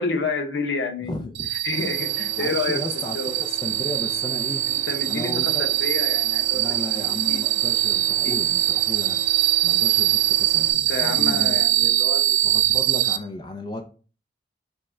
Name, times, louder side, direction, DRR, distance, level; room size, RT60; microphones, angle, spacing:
voice 1, 0.0-3.4 4.7-7.4 10.7-12.5, left 3 dB, 75° left, 4 dB, 0.8 m, -30 dB
voice 2, 1.0-1.5 2.4-4.6 5.1-5.7 6.5-9.2 9.6-11.9 12.4-13.8, left 1 dB, 25° left, 4 dB, 0.4 m, -34 dB
sound 1, 1.3-13.2, right 15 dB, 70° right, 0.4 m, -22 dB
sound 2, 1.7-10.7, right 1 dB, 10° right, 0.9 m, -43 dB
5.3 x 2.2 x 3.6 m, 0.38 s
head